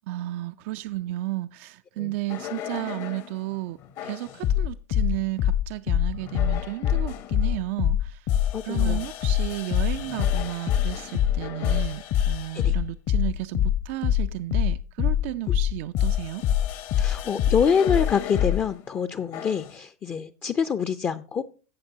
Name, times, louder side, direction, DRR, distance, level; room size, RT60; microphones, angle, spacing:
voice 1, 0.1-8.4 8.6-16.5, right 17 dB, 50° right, 0.4 m, -33 dB
sound 1, 2.3-3.3 4.0-18.6 19.3-19.7, left 10 dB, 45° left, 1.0 m, -25 dB
voice 2, 8.5-9.0 12.6-12.7 17.0-21.4, left 6 dB, 25° left, 0.6 m, -26 dB
15.5 x 6.5 x 2.8 m
hypercardioid pair, 100°, 8 cm